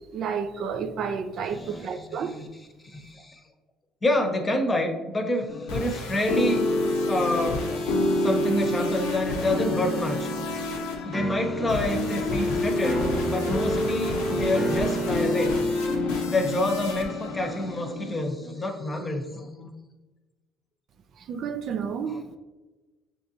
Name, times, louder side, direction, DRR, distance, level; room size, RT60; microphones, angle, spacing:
voice 1, 0.1-2.4 21.2-22.2, right 6 dB, 60° right, 0.3 m, -31 dB
voice 2, 1.5-2.5 2.8-3.4 4.0-6.7 7.1-7.6 8.2-15.6 16.2-19.7 22.1-22.2, left 1 dB, 30° left, 0.8 m, -28 dB
sound 1, 5.5-18.3, left 1 dB, 85° left, 0.7 m, -27 dB
sound 2, 11.1-18.0, right 1 dB, 15° right, 0.7 m, -35 dB
6.6 x 2.6 x 2.8 m
hypercardioid pair, 65°, 0 cm